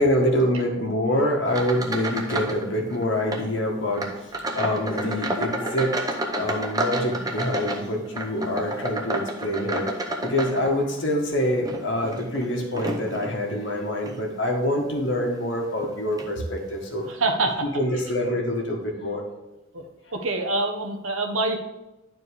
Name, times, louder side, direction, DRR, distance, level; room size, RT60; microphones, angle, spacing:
voice 1, 0.0-4.1 4.5-6.0 6.3-9.9 10.2-17.0 17.6-19.2, left 1 dB, 60° left, 0 dB, 1.6 m, -25 dB
sound 1, 1.5-2.6 2.9-3.5 3.9-11.0 11.5-13.4 14.0-14.2 14.8-14.9 15.8-15.9 16.2-16.3, right 1 dB, 20° right, 0.7 m, -30 dB
sound 2, 3.5-6.9 7.2-9.2 9.5-9.6 9.9-10.0 10.4-10.5 11.0-11.3 12.2-12.3, equal, 25° left, 1.5 m, -42 dB
voice 2, 17.0-17.6 19.7-19.9 20.1-21.6, right 2 dB, 80° right, 4 dB, 1.1 m, -25 dB
10.0 x 4.5 x 4.8 m, 0.99 s
head